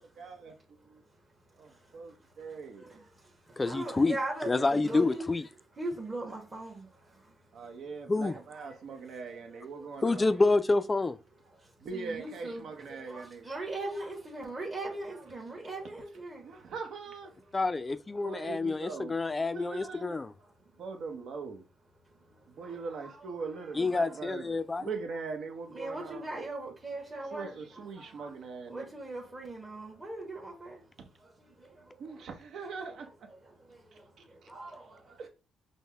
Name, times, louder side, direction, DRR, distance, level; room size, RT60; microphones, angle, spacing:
voice 1, 0.0-0.5 1.6-1.7 1.9-2.9 7.5-10.4 11.8-13.5 16.4-17.3 18.2-19.2 19.5-20.2 20.8-21.6 22.5-26.4 27.3-28.9 32.0-33.1 35.2-35.3, right 4 dB, 70° right, 0.8 m, -41 dB
voice 2, 2.5-5.3 5.7-7.8 8.5-9.9 11.5-16.6 20.4-20.8 22.0-23.3 23.8-24.2 24.6-24.7 25.7-28.4 28.7-30.8 31.2-32.2 33.4-35.2, right 2 dB, 25° right, 1.2 m, -41 dB
voice 3, 3.6-4.2 4.4-5.4 8.1-8.4 10.0-11.2 17.5-20.3 23.7-24.9, left 3 dB, 25° left, 0.3 m, -28 dB
5.3 x 2.1 x 3.4 m
cardioid pair, 90°, 0 cm